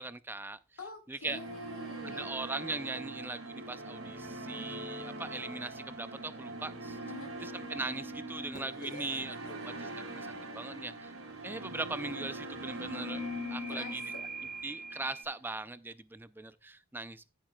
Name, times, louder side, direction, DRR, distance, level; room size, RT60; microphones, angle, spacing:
voice 1, 0.0-0.6 1.1-1.4 2.0-7.0 7.4-11.1 11.4-13.2 13.5-14.0 14.6-17.3, right 2 dB, 10° right, 0.4 m, -40 dB
voice 2, 0.8-2.3 7.1-7.4 8.8-9.6 13.7-14.0 14.5-14.6, left 3 dB, 75° left, 1.9 m, -46 dB
sound 1, 1.2-15.4, right 2 dB, 70° right, 2.6 m, -43 dB
sound 2, 4.0-8.8 12.7-15.2, left 1 dB, 35° left, 1.6 m, -44 dB
14.5 x 7.4 x 2.3 m
head